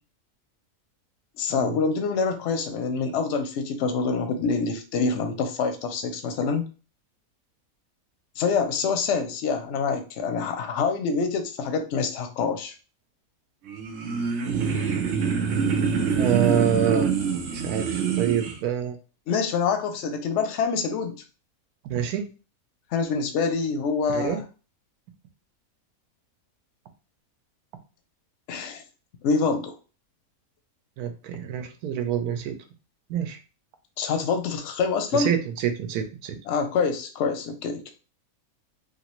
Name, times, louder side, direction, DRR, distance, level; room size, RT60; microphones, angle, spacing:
voice 1, 1.4-6.7 8.4-12.7 19.3-21.2 22.9-24.4 28.5-28.8 29.2-29.7 34.0-35.3 36.5-37.9, left 5 dB, 65° left, 7 dB, 0.8 m, -26 dB
sound 1, 13.7-18.6, right 6 dB, 65° right, 0.9 m, -25 dB
voice 2, 16.2-17.1 17.5-19.0 21.8-22.3 24.1-24.4 31.0-32.6 33.1-33.4 35.1-36.4, right 8 dB, 85° right, 7 dB, 1.1 m, -26 dB
3.2 x 2.5 x 2.9 m, 0.35 s
omnidirectional pair, 1.5 m